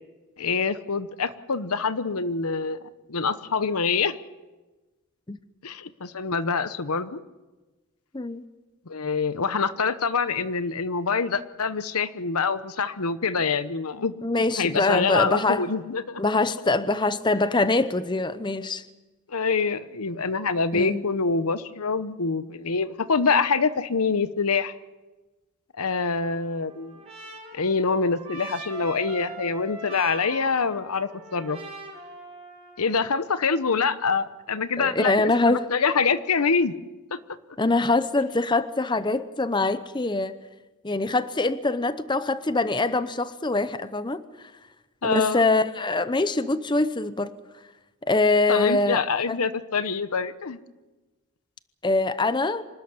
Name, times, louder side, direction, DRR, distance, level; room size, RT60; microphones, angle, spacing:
voice 1, 0.4-2.8 3.1-4.2 5.6-7.2 8.9-14.1 14.6-16.2 19.3-24.7 25.8-27.0 27.5-31.6 32.8-36.7 37.1-37.2 45.0-45.4 48.5-50.6, left 5 dB, 85° left, 13 dB, 1.0 m, -25 dB
voice 2, 14.2-15.7 16.2-18.8 20.7-21.0 34.8-35.7 37.6-40.3 40.8-44.2 45.0-47.3 48.1-49.0 49.3-49.4 51.8-52.6, left 2 dB, 20° left, 13 dB, 0.7 m, -24 dB
Trumpet, 26.2-32.9, right 3 dB, 30° right, 5.0 m, -41 dB
25.5 x 13.0 x 9.7 m, 1.2 s
head